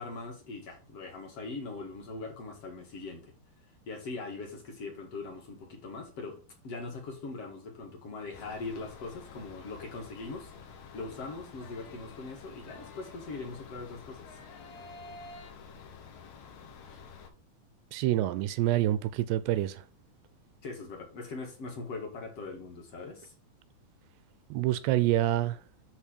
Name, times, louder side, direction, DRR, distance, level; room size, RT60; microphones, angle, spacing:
voice 1, 0.0-3.3 3.9-14.4 16.8-17.0 20.6-23.3, left 3 dB, 50° left, 2.1 m, -41 dB
sound 1, 8.2-9.1 10.9-13.8 14.2-15.5, left 1 dB, 90° left, 3.9 m, -53 dB
sound 2, 8.3-17.3, left 6 dB, 70° left, 3.3 m, -50 dB
voice 2, 17.9-19.8 24.5-25.6, right 14 dB, 80° right, 2.5 m, -27 dB
10.0 x 4.1 x 5.1 m
omnidirectional pair, 5.1 m